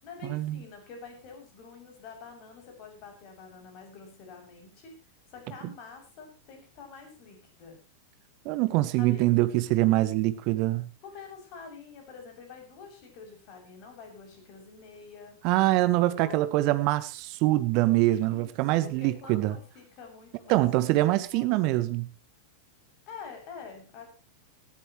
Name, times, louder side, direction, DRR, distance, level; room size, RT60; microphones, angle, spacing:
voice 1, 0.0-4.9 5.3-7.8 9.0-9.3 11.0-15.4 16.0-16.6 18.3-18.5 18.8-21.6 23.1-24.1, left 5 dB, 40° left, 7.4 m, -47 dB
voice 2, 8.4-10.9 15.4-19.6 20.5-22.1, right 17 dB, 45° right, 1.5 m, -24 dB
19.0 x 13.5 x 3.2 m
figure-of-eight pair, 90°, 0 cm